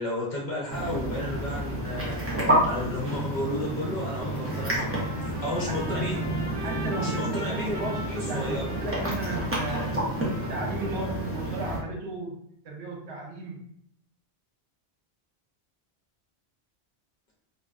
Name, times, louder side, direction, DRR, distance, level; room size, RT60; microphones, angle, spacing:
voice 1, 0.0-2.2 2.6-6.2 7.0-8.7, left 1 dB, 50° left, -4 dB, 0.7 m, -33 dB
sound 1, 0.7-11.8, right 1 dB, 20° right, 0.4 m, -30 dB
Trumpet, 4.5-11.5, equal, 60° right, 1.2 m, -42 dB
voice 2, 6.6-10.0 10.5-12.4 12.6-13.6, right 2 dB, 80° right, -1 dB, 0.9 m, -35 dB
2.6 x 2.1 x 2.3 m, 0.70 s
omnidirectional pair, 1.1 m